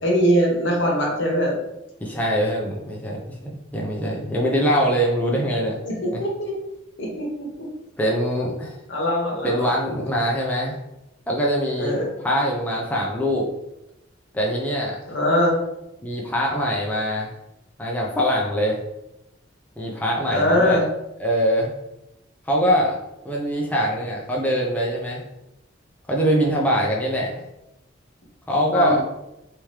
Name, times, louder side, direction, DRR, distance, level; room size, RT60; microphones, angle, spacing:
voice 1, 0.0-1.6 5.8-6.6 7.0-7.7 8.9-9.7 11.8-12.1 15.1-15.5 20.3-20.8 28.7-29.0, equal, 65° left, -1 dB, 1.0 m, -22 dB
voice 2, 2.0-5.8 8.0-8.8 9.4-10.8 11.3-12.0 12.2-13.5 14.3-15.0 16.0-17.3 17.8-18.8 19.8-20.8 21.2-21.7 22.5-23.0 23.2-25.2 26.1-27.3 28.5-29.0, equal, 10° left, -3 dB, 0.4 m, -23 dB
3.5 x 2.9 x 3.2 m, 0.91 s
head